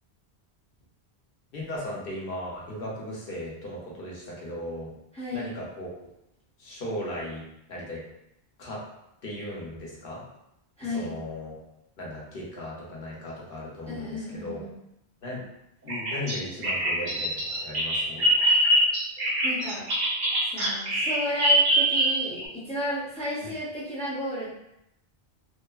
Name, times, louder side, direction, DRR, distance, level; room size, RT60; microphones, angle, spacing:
voice 1, 1.5-4.9 5.3-5.9 6.6-7.4 7.7-8.0 8.6-8.8 9.2-10.2 10.9-11.5 12.0-14.6 15.2-15.4 15.8-17.3 17.6-18.3 23.4-23.5, left 1 dB, 60° left, -4 dB, 0.9 m, -36 dB
voice 2, 5.1-5.5 10.8-11.1 13.9-14.8 19.4-19.8 20.5-24.5, left 1 dB, 10° left, -8 dB, 0.5 m, -33 dB
Bird vocalization bird call bird song, 15.9-22.4, right 1 dB, 50° right, 0.7 m, -23 dB
3.1 x 2.0 x 2.3 m, 0.82 s
omnidirectional pair, 1.1 m